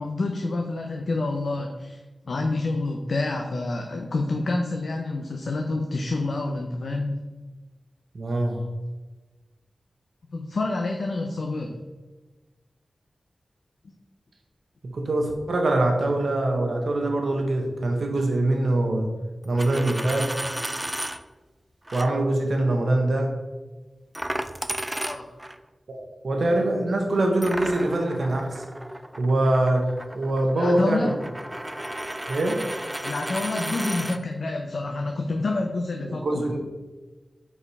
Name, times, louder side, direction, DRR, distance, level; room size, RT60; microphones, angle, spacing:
voice 1, 0.0-7.2 10.3-11.8 24.9-25.2 30.5-31.1 33.0-36.5, left 2 dB, 75° left, 2 dB, 0.6 m, -28 dB
voice 2, 8.1-8.6 14.9-19.1 19.4-20.3 21.9-23.3 25.9-28.6 29.2-29.9 30.1-31.1 32.3-32.6 36.1-36.7, right 1 dB, 75° right, 2 dB, 0.9 m, -23 dB
Coin (dropping), 19.4-21.2 21.9-22.1 24.1-25.6 27.4-34.2, right 1 dB, 15° right, 0.4 m, -33 dB
5.5 x 4.7 x 4.8 m, 1.2 s
wide cardioid pair, 70°, 0 cm